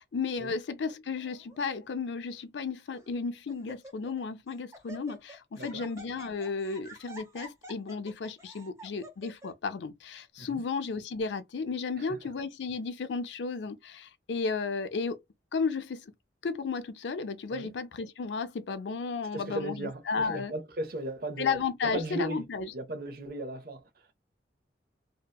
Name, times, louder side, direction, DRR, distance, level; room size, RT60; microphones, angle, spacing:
voice 1, 0.0-15.2 15.5-16.0 16.4-20.5 21.4-22.7, left 4 dB, 85° left, 0.5 m, -33 dB
Laughter, 1.2-1.6 2.3-2.4 2.9-3.2 3.5-4.2 4.5-9.5, right 1 dB, 15° right, 0.6 m, -49 dB
voice 2, 5.6-5.9 10.4-10.6 12.0-12.3 17.5-17.7 19.3-24.1, right 1 dB, 55° right, 0.6 m, -37 dB
2.7 x 2.1 x 2.2 m
head